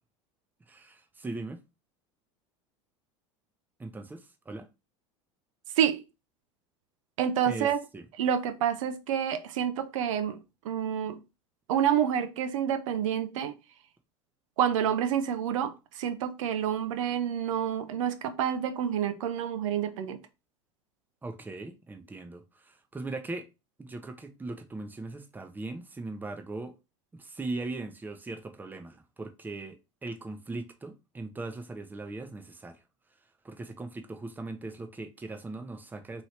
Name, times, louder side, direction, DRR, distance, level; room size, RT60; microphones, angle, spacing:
voice 1, 0.7-1.6 3.8-4.7 7.5-8.0 21.2-23.5 23.8-26.7 27.1-32.8 33.4-36.2, right 2 dB, 10° right, 0.6 m, -39 dB
voice 2, 7.2-7.8 8.2-11.2 11.7-13.5 14.6-20.2, right 9 dB, 80° right, 0.5 m, -28 dB
2.9 x 2.6 x 3.2 m
hypercardioid pair, 90°, 16 cm